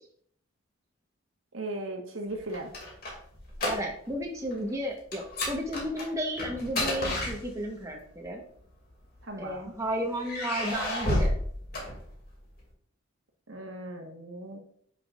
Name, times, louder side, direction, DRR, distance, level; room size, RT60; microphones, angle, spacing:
voice 1, 1.5-2.7 9.2-9.7 13.5-14.6, right 1 dB, 75° right, 3 dB, 1.4 m, -37 dB
sound 1, 2.3-4.2 4.5-4.7 5.1-7.9 8.8-9.6 10.2-12.5, left 1 dB, 50° left, 2.6 m, -32 dB
voice 2, 3.6-8.4 9.4-11.3, equal, 15° right, 0 dB, 1.1 m, -33 dB
9.9 x 5.9 x 2.5 m, 0.62 s
head